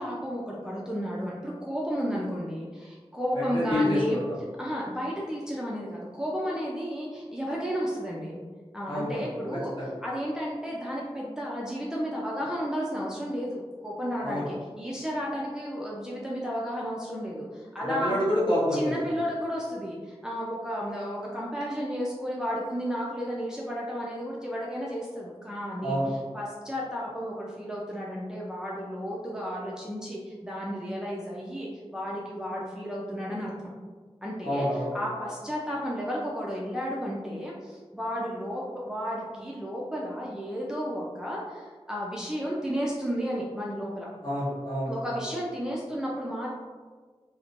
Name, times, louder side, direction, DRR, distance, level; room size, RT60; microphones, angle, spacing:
voice 1, 0.0-4.2 4.6-8.4 8.7-9.7 10.0-18.2 18.7-26.0 26.3-33.7 34.2-34.7 34.9-44.1 44.9-46.5, equal, 5° right, -5 dB, 0.4 m, -33 dB
voice 2, 3.3-4.4 8.9-9.3 9.8-9.9 14.2-14.4 17.8-18.9 25.8-26.1 34.4-35.0 44.2-45.2, left 1 dB, 45° left, -8 dB, 1.2 m, -28 dB
3.0 x 2.1 x 2.5 m, 1.5 s
wide cardioid pair, 65°, 11 cm